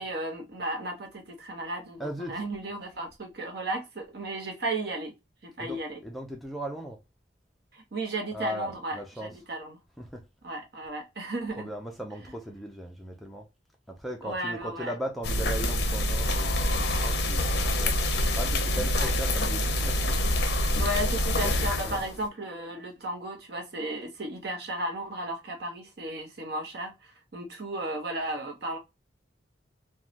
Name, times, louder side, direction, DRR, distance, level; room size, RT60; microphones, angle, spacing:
voice 1, 0.0-5.1 5.4-6.0 7.7-9.8 10.4-11.7 14.2-14.9 18.9-19.1 20.8-28.8, right 1 dB, 55° right, 0.8 m, -34 dB
voice 2, 2.0-2.4 5.6-7.0 8.3-9.4 10.0-10.2 11.5-13.5 13.9-18.0 18.3-20.0 21.8-22.0, equal, ahead, 0.4 m, -38 dB
sound 1, 15.2-22.2, left 1 dB, 55° left, 0.5 m, -26 dB
3.1 x 2.2 x 2.4 m
head